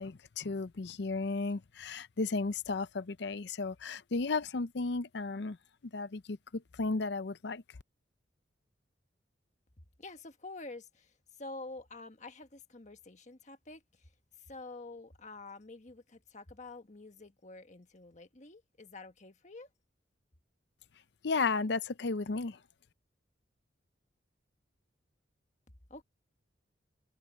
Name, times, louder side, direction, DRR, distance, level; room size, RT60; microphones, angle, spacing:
voice 1, 0.0-5.6 5.9-6.4 6.8-7.6 21.2-22.6, left 3 dB, 60° left, 0.6 m, -34 dB
voice 2, 10.0-14.1 14.4-19.7 25.9-26.0, left 3 dB, 40° left, 1.5 m, -48 dB
head